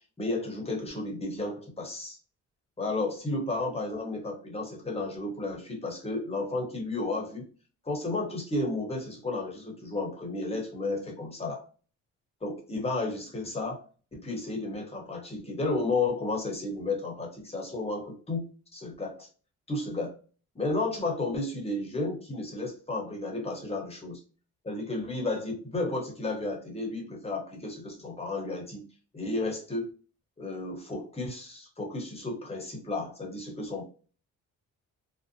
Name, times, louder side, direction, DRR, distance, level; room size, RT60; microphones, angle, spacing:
voice 1, 0.2-2.2 2.8-7.4 7.8-11.6 12.4-19.3 19.7-20.2 20.5-24.2 24.6-28.8 29.1-29.9 30.4-33.9, left 2 dB, 20° left, 0 dB, 1.0 m, -33 dB
2.7 x 2.1 x 2.6 m, 0.38 s
cardioid pair, 90°, 30 cm